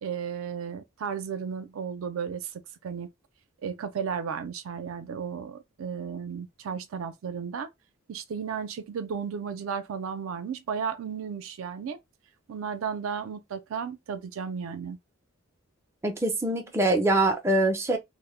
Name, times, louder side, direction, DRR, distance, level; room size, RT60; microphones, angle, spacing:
voice 1, 0.0-2.5 2.8-3.1 3.6-7.7 8.1-12.0 12.5-15.0, right 6 dB, 80° right, 0.4 m, -34 dB
voice 2, 16.0-18.0, right 2 dB, 15° right, 0.4 m, -24 dB
2.1 x 2.0 x 3.0 m
head